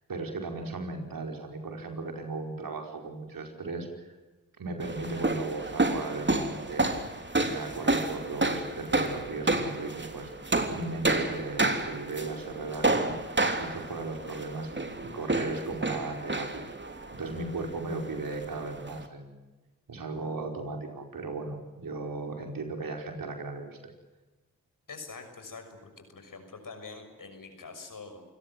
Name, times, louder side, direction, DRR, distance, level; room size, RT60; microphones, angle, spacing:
voice 1, 0.1-4.1 4.6-10.3 10.7-13.1 13.6-16.7 17.1-19.4 19.9-23.9, right 3 dB, 75° right, 4 dB, 5.1 m, -36 dB
sound 1, 4.8-19.1, right 2 dB, 30° right, 3.3 m, -30 dB
voice 2, 24.9-28.2, left 4 dB, 70° left, 6 dB, 6.4 m, -45 dB
28.5 x 17.5 x 7.7 m, 1.1 s
cardioid pair, 40°, 34 cm